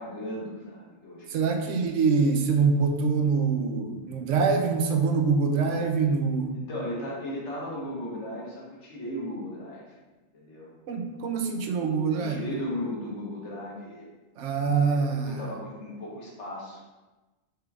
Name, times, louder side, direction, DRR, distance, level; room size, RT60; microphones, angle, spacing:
voice 1, 0.0-1.5 6.5-9.8 10.3-10.7 12.0-14.1 14.7-16.8, left 1 dB, 70° left, -4 dB, 1.5 m, -36 dB
voice 2, 1.3-6.5 10.9-12.4 14.4-15.5, right 5 dB, 80° right, 4 dB, 1.0 m, -25 dB
4.5 x 3.5 x 3.4 m, 1.2 s
omnidirectional pair, 1.2 m